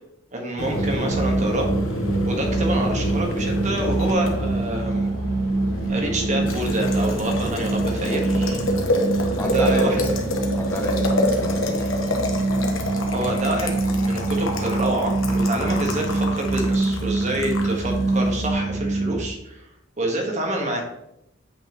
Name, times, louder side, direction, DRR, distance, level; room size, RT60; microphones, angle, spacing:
voice 1, 0.3-1.7 2.2-5.1 5.9-8.6 9.5-10.0 13.1-19.6 20.0-20.8, right 1 dB, 35° right, 1 dB, 1.4 m, -27 dB
Boiling, 0.6-18.5, left 1 dB, 80° left, 1.1 m, -28 dB
sound 1, 0.7-19.2, right 2 dB, 80° right, 2.0 m, -25 dB
voice 2, 9.4-10.1 10.5-11.9, left 1 dB, 10° left, 2 dB, 0.6 m, -31 dB
8.4 x 5.6 x 3.0 m, 0.81 s
head